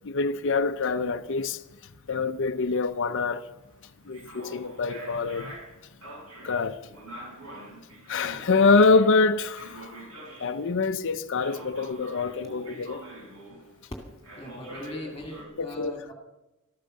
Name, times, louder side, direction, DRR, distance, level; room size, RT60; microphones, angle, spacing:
voice 1, 0.0-1.6 2.1-3.4 4.1-5.5 6.4-6.8 8.1-9.9 10.4-13.0 15.6-15.9, left 4 dB, 60° left, 0.6 m, -25 dB
sound 1, 0.6-10.8 11.4-13.9 14.2-15.4, right 1 dB, 70° right, 5.6 m, -45 dB
voice 2, 14.4-16.1, left 1 dB, 15° left, 2.3 m, -39 dB
14.0 x 13.0 x 6.5 m
head